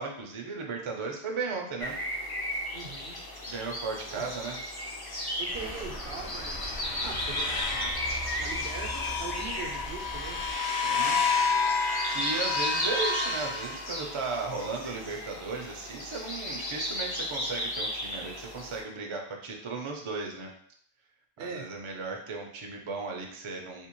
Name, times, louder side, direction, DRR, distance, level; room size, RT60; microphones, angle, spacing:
voice 1, 0.0-2.0 3.5-4.6 10.8-11.2 11.7-20.5 21.4-23.9, right 4 dB, 40° right, 1 dB, 0.5 m, -36 dB
sound 1, 1.8-18.8, left 1 dB, 30° left, 0.5 m, -35 dB
voice 2, 2.7-3.2 4.1-4.2 5.4-6.7 7.0-8.0 8.4-10.4 21.4-21.7, right 5 dB, 75° right, 3 dB, 0.8 m, -41 dB
sound 2, 5.5-10.5, right 1 dB, 55° left, 1.2 m, -41 dB
sound 3, 6.1-14.4, left 4 dB, 80° left, 0.9 m, -31 dB
3.5 x 2.8 x 3.0 m, 0.63 s
omnidirectional pair, 1.1 m